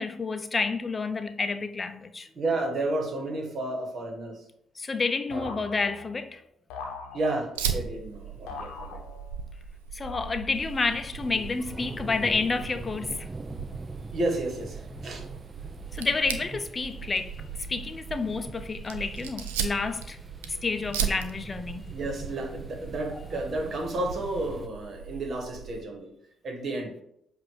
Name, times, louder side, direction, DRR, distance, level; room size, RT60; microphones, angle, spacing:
voice 1, 0.0-2.3 4.8-6.4 9.9-13.3 15.9-20.2 20.6-21.9, left 4 dB, 35° left, 0.5 m, -29 dB
voice 2, 2.3-4.4 5.3-5.6 7.1-9.0 14.0-15.2 21.9-26.1 26.4-26.9, right 2 dB, 55° right, 1.6 m, -32 dB
sound 1, 5.3-6.3 6.7-7.6 8.5-9.5 10.0-10.7, left 4 dB, 80° left, 0.8 m, -42 dB
Fire, 7.6-25.8, right 8 dB, 90° right, 0.5 m, -38 dB
sound 2, 10.5-24.7, right 3 dB, 25° right, 0.6 m, -43 dB
7.5 x 2.6 x 4.8 m
hypercardioid pair, 50°, 0 cm